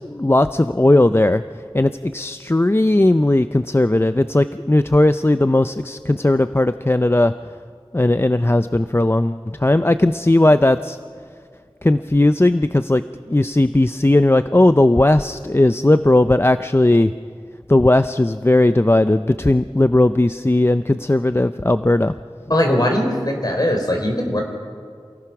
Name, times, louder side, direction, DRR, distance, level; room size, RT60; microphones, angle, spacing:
voice 1, 0.0-1.4 1.7-7.4 7.9-11.0 11.8-17.1 17.7-22.1, left 1 dB, 25° left, 11 dB, 0.5 m, -17 dB
voice 2, 22.5-24.4, left 1 dB, 45° left, 2 dB, 4.4 m, -20 dB
28.0 x 17.5 x 6.0 m, 2.1 s
wide cardioid pair, 40°, 9 cm